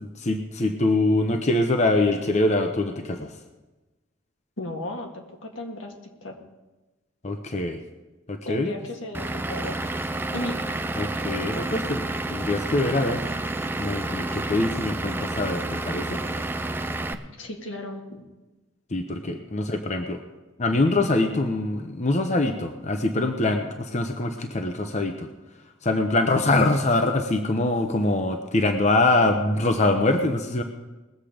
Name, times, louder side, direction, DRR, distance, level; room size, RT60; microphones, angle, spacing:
voice 1, 0.0-3.3 7.2-7.8 8.3-8.7 11.0-13.2 13.8-16.2 18.9-20.2 20.6-25.3 25.8-30.6, left 2 dB, 35° left, 6 dB, 0.8 m, -24 dB
voice 2, 4.6-5.9 6.2-6.4 8.4-9.8 10.3-10.6 17.4-18.2, left 1 dB, 85° left, 2 dB, 1.9 m, -35 dB
Vehicle / Engine, 9.1-17.1, right 2 dB, 10° right, 0.5 m, -30 dB
20.0 x 7.5 x 5.0 m, 1.1 s
head